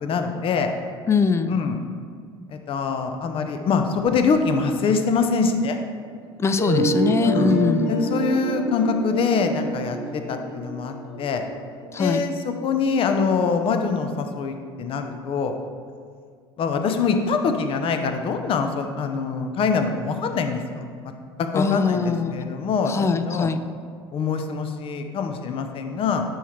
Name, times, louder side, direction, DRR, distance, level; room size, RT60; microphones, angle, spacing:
voice 1, 0.0-0.7 1.5-1.8 2.5-5.8 6.7-6.9 7.3-7.5 7.9-11.4 12.0-15.6 16.6-21.1 21.4-23.5 24.1-26.2, left 5 dB, 45° left, 6 dB, 0.7 m, -24 dB
voice 2, 1.1-1.5 6.4-8.0 11.9-12.2 21.5-22.3 22.9-23.6, left 5 dB, 20° left, 11 dB, 0.4 m, -22 dB
sound 1, 6.6-12.4, right 1 dB, 70° left, 1.4 m, -27 dB
10.0 x 4.4 x 3.2 m, 2.1 s
hypercardioid pair, 70°, 13 cm